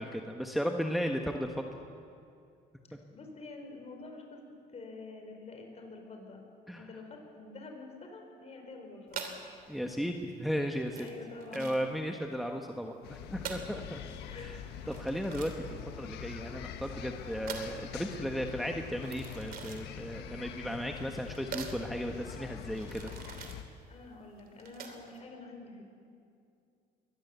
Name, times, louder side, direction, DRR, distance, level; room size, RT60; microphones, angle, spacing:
voice 1, 0.0-1.8 6.7-6.9 9.7-11.1 11.5-14.0 14.3-14.6 14.9-23.1 23.4-23.5, equal, ahead, 3 dB, 1.3 m, -35 dB
voice 2, 3.1-4.4 4.7-6.4 6.8-9.4 11.0-11.9 13.6-13.7 14.3-14.6 23.9-25.8, left 3 dB, 40° left, 3 dB, 5.2 m, -47 dB
sound 1, 9.1-25.2, right 6 dB, 60° right, 3.0 m, -46 dB
Paris Square Trinité, 13.0-23.6, left 7 dB, 80° left, 1.5 m, -44 dB
22.5 x 19.0 x 8.1 m, 2.4 s
cardioid pair, 110°, 17 cm